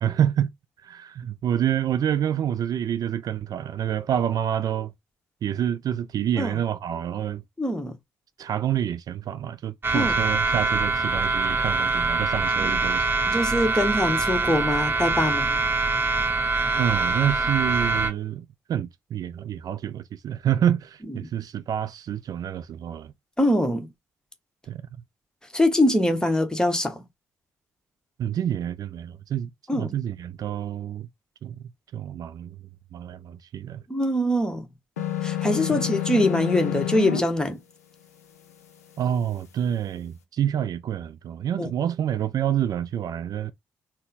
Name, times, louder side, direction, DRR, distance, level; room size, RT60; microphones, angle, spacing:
voice 1, 0.0-0.5 0.8-4.9 5.4-7.4 8.4-13.2 16.8-23.1 24.7-24.8 28.2-31.1 31.4-31.6 31.9-32.6 32.9-33.8 35.7-35.9 39.0-43.5, right 10 dB, 50° right, 0.4 m, -27 dB
voice 2, 7.6-7.9 9.9-10.1 12.6-12.8 13.3-15.6 23.4-23.9 25.5-27.0 29.7-29.9 33.9-34.7 35.2-37.6 41.6-41.7, left 1 dB, 10° left, 1.2 m, -23 dB
sound 1, 9.8-18.1, right 3 dB, 25° right, 1.0 m, -24 dB
sound 2, 35.0-37.2, left 11 dB, 85° left, 0.5 m, -28 dB
3.9 x 2.1 x 3.9 m
figure-of-eight pair, 45°, 8 cm